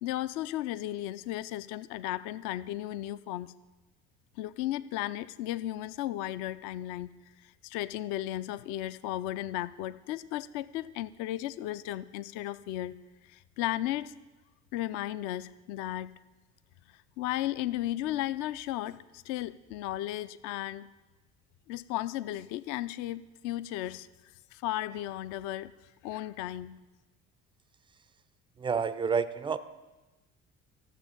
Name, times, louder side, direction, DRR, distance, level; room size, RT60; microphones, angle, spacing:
voice 1, 0.0-3.5 4.4-7.1 7.4-13.0 13.2-14.2 14.7-16.2 16.9-20.9 21.7-24.1 24.5-25.7 26.0-26.8, left 14 dB, 50° left, 15 dB, 0.4 m, -35 dB
voice 2, 28.6-29.6, right 6 dB, 15° right, 14 dB, 0.3 m, -29 dB
12.5 x 7.3 x 5.3 m, 1.1 s
figure-of-eight pair, 55°, 41 cm